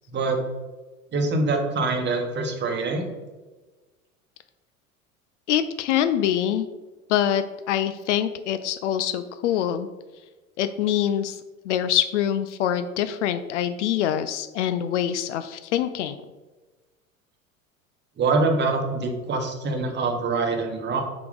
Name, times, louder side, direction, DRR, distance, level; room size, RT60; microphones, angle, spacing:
voice 1, 0.1-0.4 1.1-3.1 18.2-21.0, right 3 dB, 25° right, 4 dB, 1.1 m, -24 dB
voice 2, 5.5-6.7 7.1-9.9 10.6-11.4 11.7-16.2, left 10 dB, 60° left, 11 dB, 0.5 m, -24 dB
5.7 x 4.9 x 3.9 m, 1.2 s
figure-of-eight pair, 75°, 41 cm